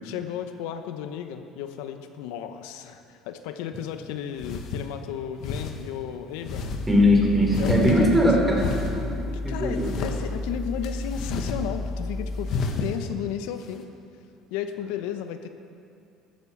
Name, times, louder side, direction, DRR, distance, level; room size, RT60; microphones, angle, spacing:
voice 1, 0.0-6.7 7.6-8.5 9.2-12.5 12.8-13.9 14.5-15.5, left 9 dB, 85° left, 8 dB, 0.8 m, -34 dB
sound 1, 3.8-3.9 4.3-4.9 5.4-5.7 6.4-6.8 7.5-8.2 8.5-9.0 9.7-10.2 10.8-11.6 11.9-12.0 12.4-12.9, left 4 dB, 55° left, 1.4 m, -30 dB
sound 2, 6.7-12.5, left 2 dB, 15° left, 0.4 m, -32 dB
voice 2, 6.9-9.1 9.4-9.9, left 1 dB, 10° right, -1 dB, 3.1 m, -20 dB
13.5 x 9.7 x 7.1 m, 2.5 s
cardioid pair, 125°, 0 cm